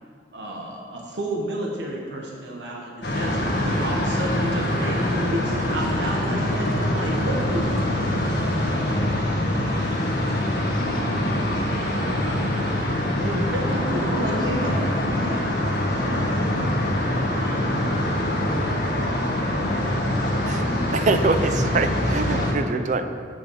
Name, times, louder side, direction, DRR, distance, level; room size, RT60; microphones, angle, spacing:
voice 1, 0.3-7.7 13.2-14.7 15.0-15.5, right 1 dB, 75° right, -1 dB, 1.2 m, -30 dB
sound 1, 3.0-22.5, left 1 dB, 65° left, 1.6 m, -24 dB
voice 2, 10.2-13.3 13.7-15.4, equal, 25° left, -2 dB, 1.1 m, -40 dB
voice 3, 20.9-23.1, right 3 dB, 40° right, 8 dB, 0.4 m, -24 dB
7.4 x 5.8 x 7.2 m, 2.3 s
head